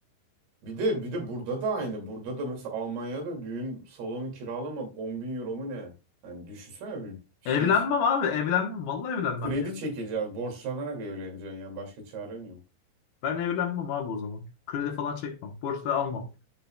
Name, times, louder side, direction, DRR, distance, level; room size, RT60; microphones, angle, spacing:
voice 1, 0.6-5.9 6.2-7.2 7.4-7.7 9.4-12.6, right 2 dB, 65° right, 4.2 m, -34 dB
voice 2, 7.5-9.6 13.2-16.3, left 7 dB, 70° left, 2.7 m, -28 dB
14.0 x 5.3 x 2.2 m
omnidirectional pair, 5.0 m